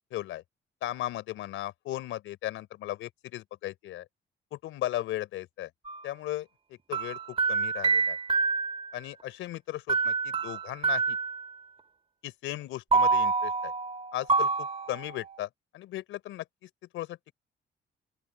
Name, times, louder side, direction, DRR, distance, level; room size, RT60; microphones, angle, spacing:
voice 1, 0.1-0.4 0.8-4.0 4.5-5.7 6.0-6.5 6.9-8.2 8.9-11.2 12.2-13.7 14.1-15.5 15.7-17.3, left 14 dB, 90° left, 4.3 m, -36 dB
sound 1, 5.8-6.0 6.9-8.9 9.9-11.5 12.9-15.4, right 4 dB, 30° right, 2.5 m, -27 dB
open air
cardioid pair, 90°, 20 cm